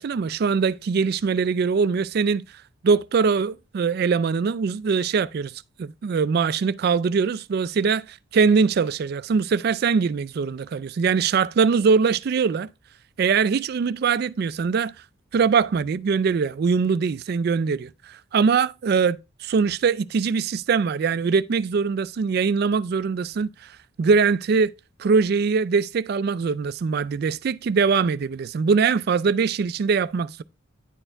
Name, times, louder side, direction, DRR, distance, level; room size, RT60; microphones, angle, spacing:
voice 1, 0.0-2.4 2.8-5.5 5.8-12.7 13.2-14.9 15.3-23.5 24.0-24.7 25.0-30.4, right 5 dB, 50° right, 0.3 m, -22 dB
9.9 x 4.4 x 3.4 m
head